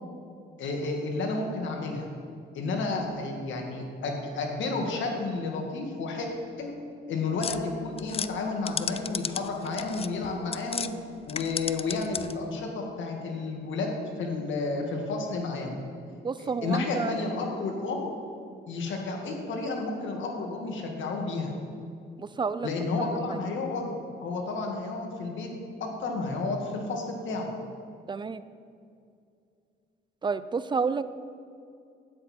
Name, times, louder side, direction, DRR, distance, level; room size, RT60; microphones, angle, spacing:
voice 1, 0.6-2.1 2.5-6.3 6.6-6.7 7.1-10.9 11.3-13.9 14.2-15.8 16.4-18.1 18.7-21.5 22.6-23.9 24.2-25.5 25.8-27.5, left 3 dB, 75° left, 1 dB, 1.9 m, -31 dB
sound 1, 7.4-10.9 11.2-12.5, left 7 dB, 30° left, 0.4 m, -35 dB
voice 2, 16.2-17.1 22.2-22.7 23.0-23.4 28.1-28.4 30.2-31.0, right 5 dB, 25° right, 14 dB, 0.5 m, -30 dB
12.5 x 9.2 x 4.4 m, 2.4 s
cardioid pair, 90°, 20 cm